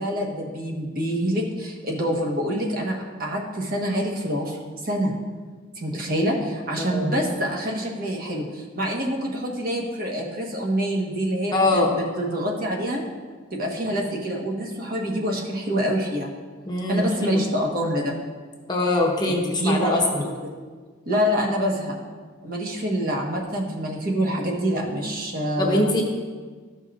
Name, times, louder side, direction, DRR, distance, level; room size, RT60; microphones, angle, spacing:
voice 1, 0.0-4.6 4.8-5.1 5.8-13.0 13.5-16.3 16.9-18.1 19.2-20.5 21.1-22.0 22.4-26.0, equal, 45° right, -1 dB, 1.2 m, -26 dB
voice 2, 6.8-7.1 11.5-11.9 16.7-17.4 18.7-20.2 25.6-26.0, left 2 dB, 20° left, -1 dB, 0.9 m, -23 dB
14.0 x 5.4 x 2.4 m, 1.5 s
head